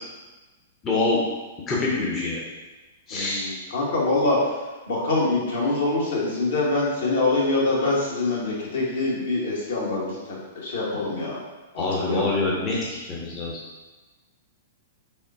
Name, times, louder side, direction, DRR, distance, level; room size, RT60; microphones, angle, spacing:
voice 1, 0.8-1.2 1.7-2.4 3.1-3.5 11.8-13.6, left 3 dB, 25° left, -5 dB, 0.7 m, -25 dB
voice 2, 3.1-4.5 4.9-10.2 10.5-11.4 11.7-12.3, left 2 dB, 60° left, -5 dB, 1.2 m, -24 dB
4.2 x 3.5 x 2.6 m, 1.2 s
figure-of-eight pair, 105°, 0 cm